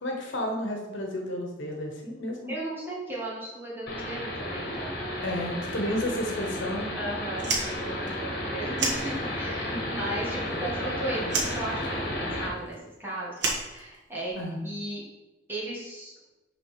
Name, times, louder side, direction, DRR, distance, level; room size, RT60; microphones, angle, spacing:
voice 1, 0.0-2.5 5.2-6.9 9.7-9.8 14.3-14.6, left 1 dB, 80° left, 1 dB, 1.3 m, -31 dB
voice 2, 2.5-5.3 7.0-14.3 14.6-15.0 15.5-16.1, right 1 dB, 10° right, -6 dB, 2.1 m, -36 dB
sound 1, 3.9-12.5, left 1 dB, 55° left, 1.6 m, -33 dB
Fire, 7.3-9.6 9.9-10.9 11.2-14.4, right 3 dB, 65° right, 1.4 m, -32 dB
6.3 x 4.0 x 5.8 m, 1.0 s
head